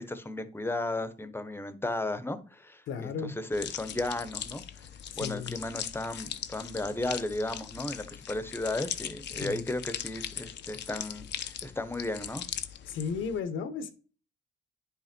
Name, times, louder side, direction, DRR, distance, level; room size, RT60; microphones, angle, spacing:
voice 1, 0.0-4.9 5.1-12.4, left 2 dB, 10° left, 1.1 m, -34 dB
voice 2, 2.9-3.3 5.1-5.5 9.4-9.6 12.9-13.9, left 6 dB, 80° left, 1.3 m, -34 dB
sound 1, 3.5-13.4, left 9 dB, 60° left, 0.8 m, -40 dB
10.0 x 5.6 x 4.5 m
cardioid pair, 90°, 20 cm